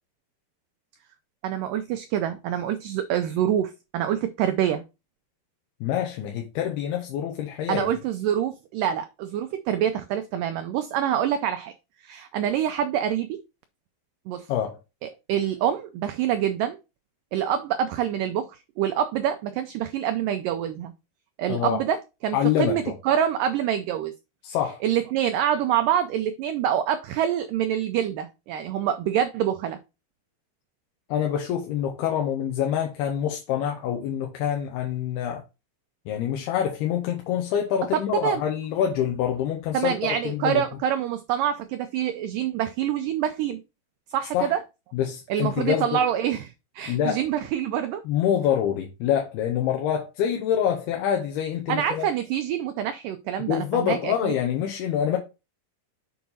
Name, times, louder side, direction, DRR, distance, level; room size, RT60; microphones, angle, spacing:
voice 1, 1.4-4.8 7.7-11.7 12.0-13.4 14.3-14.5 15.3-16.8 17.3-20.9 21.4-22.0 22.2-24.1 24.8-29.8 37.9-38.4 39.7-43.6 44.1-44.6 45.3-48.0 51.7-54.3, right 10 dB, 85° right, 1.9 m, -26 dB
voice 2, 5.8-8.0 14.5-14.8 21.5-21.8 22.3-22.9 24.4-24.8 31.1-35.4 36.1-39.9 40.2-40.6 44.3-44.5 44.9-46.0 46.9-47.2 48.1-52.1 53.4-55.2, left 9 dB, 85° left, 2.9 m, -26 dB
7.2 x 4.7 x 4.0 m
omnidirectional pair, 4.5 m